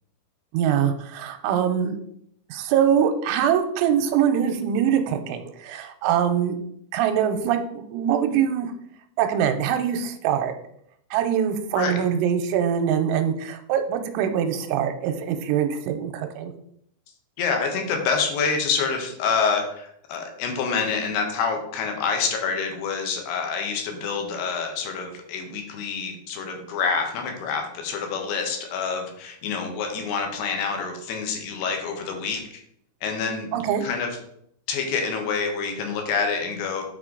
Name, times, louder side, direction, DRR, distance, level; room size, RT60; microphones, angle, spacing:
voice 1, 0.5-2.0 2.5-6.6 6.9-8.7 9.2-10.5 11.1-16.5 33.5-33.8, right 8 dB, 90° right, 6 dB, 3.0 m, -23 dB
voice 2, 17.4-32.4 33.0-33.5 33.8-34.1 34.7-36.8, left 5 dB, 70° left, 3 dB, 2.9 m, -27 dB
9.3 x 4.4 x 3.8 m, 0.71 s
omnidirectional pair, 5.5 m